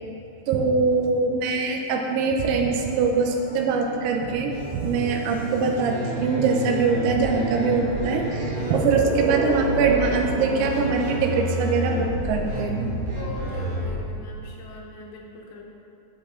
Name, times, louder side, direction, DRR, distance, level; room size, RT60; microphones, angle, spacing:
voice 1, 0.5-13.0, right 4 dB, 85° right, 1 dB, 3.5 m, -23 dB
sound 1, 2.6-9.0, right 2 dB, 35° left, 1.4 m, -42 dB
sound 2, 4.5-14.0, equal, 50° right, 2.5 m, -30 dB
sound 3, 7.7-12.6, right 2 dB, 70° right, 3.3 m, -33 dB
voice 2, 13.2-15.6, left 2 dB, 75° left, -1 dB, 2.7 m, -40 dB
11.5 x 7.7 x 3.8 m, 2.6 s
omnidirectional pair, 6.0 m